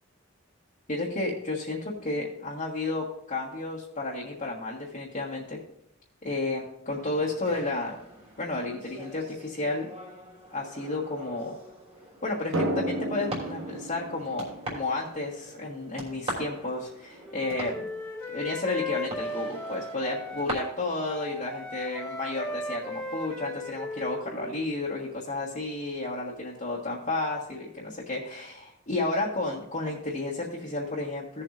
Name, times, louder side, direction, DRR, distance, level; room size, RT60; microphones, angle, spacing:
voice 1, 0.9-5.6 6.2-8.0 8.4-9.9 10.5-11.6 12.2-17.9 18.3-31.4, left 2 dB, 40° left, -6 dB, 1.5 m, -32 dB
sound 1, 6.9-20.5, right 1 dB, 30° right, 3.2 m, -43 dB
Drum, 12.5-15.9, right 1 dB, 80° right, 1.1 m, -33 dB
Wind instrument woodwind instrument, 17.2-20.7 21.0-24.5, left 2 dB, 5° left, 1.8 m, -37 dB
16.5 x 7.3 x 2.6 m, 0.75 s
head